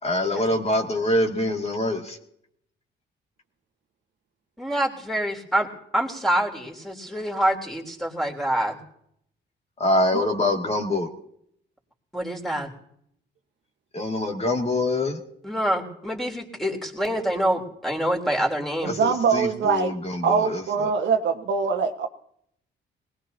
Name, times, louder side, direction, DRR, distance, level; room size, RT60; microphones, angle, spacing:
voice 1, 0.0-2.2 9.8-11.1 13.9-15.2 18.9-20.6, left 1 dB, 30° left, 2 dB, 2.5 m, -24 dB
voice 2, 4.6-5.7 5.9-8.8 12.1-12.7 15.4-18.9, right 1 dB, ahead, -1 dB, 3.6 m, -26 dB
voice 3, 18.8-19.9 20.2-22.1, right 5 dB, 65° right, 5 dB, 1.4 m, -23 dB
20.5 x 19.5 x 2.9 m, 0.70 s
cardioid pair, 90°, 20 cm